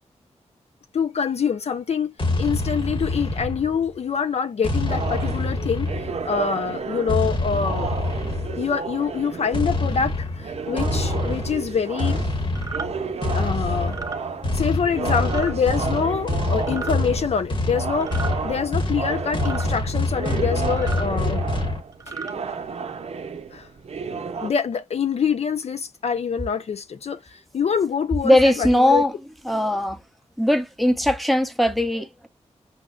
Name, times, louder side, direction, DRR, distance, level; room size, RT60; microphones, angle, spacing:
voice 1, 0.9-5.9 6.2-7.9 8.6-12.2 13.3-14.0 14.5-18.1 18.4-21.5 23.5-23.7 24.4-29.0, left 6 dB, 65° left, 0.4 m, -25 dB
sound 1, 2.2-4.0 4.6-6.4 7.1-8.7 9.5-21.8, left 2 dB, 45° left, 1.2 m, -26 dB
sound 2, 4.9-24.5, right 5 dB, 60° right, 0.5 m, -32 dB
sound 3, 12.5-12.9 13.8-14.2 15.2-15.5 16.6-16.9 18.0-18.4 19.4-19.7 20.7-21.1 21.9-22.3, right 4 dB, 30° right, 0.9 m, -34 dB
voice 2, 28.2-29.1 29.5-30.0 30.4-32.3, left 1 dB, ahead, 0.7 m, -19 dB
6.2 x 2.1 x 2.3 m
cardioid pair, 55°, 12 cm